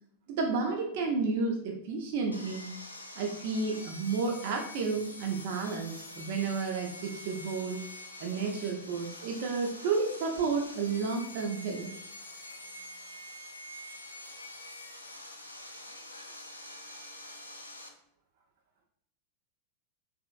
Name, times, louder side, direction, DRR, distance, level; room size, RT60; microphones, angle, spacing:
voice 1, 0.3-2.7 3.2-7.8 8.2-11.9, right 4 dB, 50° right, 2 dB, 0.3 m, -31 dB
Sawing, 2.3-17.9, left 1 dB, 85° left, 0.3 m, -46 dB
3.0 x 2.5 x 2.4 m, 0.71 s
figure-of-eight pair, 90°, 0 cm